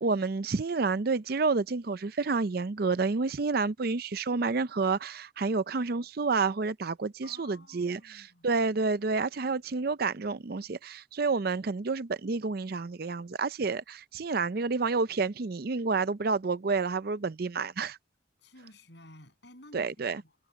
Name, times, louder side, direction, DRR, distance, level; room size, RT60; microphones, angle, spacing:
voice 1, 0.0-18.0 19.7-20.2, right 4 dB, 50° right, 0.5 m, -29 dB
voice 2, 7.2-8.5 18.4-20.4, left 1 dB, 60° left, 7.8 m, -53 dB
head